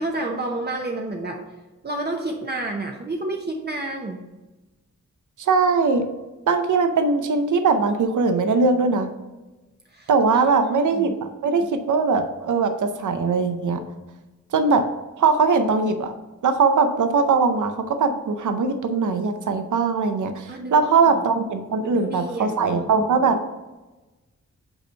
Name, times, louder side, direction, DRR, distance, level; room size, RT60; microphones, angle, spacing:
voice 1, 0.0-1.4 1.8-4.2 9.9-11.2 20.5-21.2 21.8-22.9, right 2 dB, 35° right, 1 dB, 0.8 m, -30 dB
voice 2, 5.5-6.1 6.5-9.1 10.1-13.8 14.5-14.8 15.2-16.1 16.4-23.4, right 4 dB, 90° right, 7 dB, 0.7 m, -20 dB
5.5 x 4.4 x 5.5 m, 1.1 s
wide cardioid pair, 90°, 29 cm